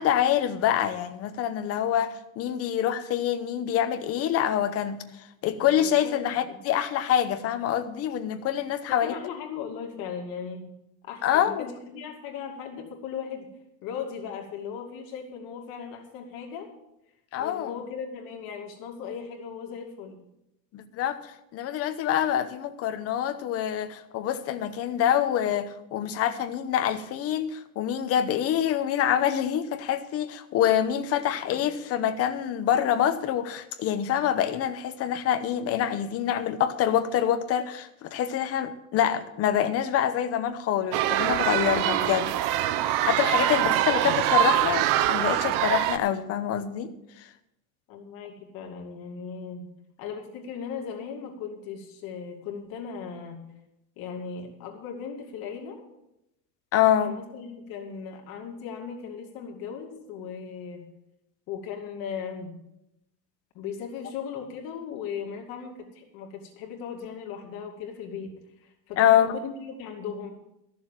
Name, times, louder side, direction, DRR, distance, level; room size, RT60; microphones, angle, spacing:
voice 1, 0.0-5.0 5.4-9.2 11.2-11.6 17.3-17.7 20.7-42.3 43.0-46.9 56.7-57.1 69.0-69.3, left 10 dB, 30° left, 9 dB, 0.9 m, -26 dB
voice 2, 5.6-6.2 6.5-6.6 8.9-10.7 11.0-13.5 13.8-16.7 17.4-20.2 31.4-31.6 43.3-43.6 47.9-49.6 50.0-53.4 54.0-55.8 57.0-60.9 61.5-62.5 63.5-68.3 68.6-70.3, left 6 dB, 50° left, 1 dB, 2.6 m, -37 dB
sound 1, 40.9-46.0, right 12 dB, 45° right, 0.6 m, -24 dB
13.5 x 7.0 x 7.5 m, 0.86 s
cardioid pair, 170°, 45 cm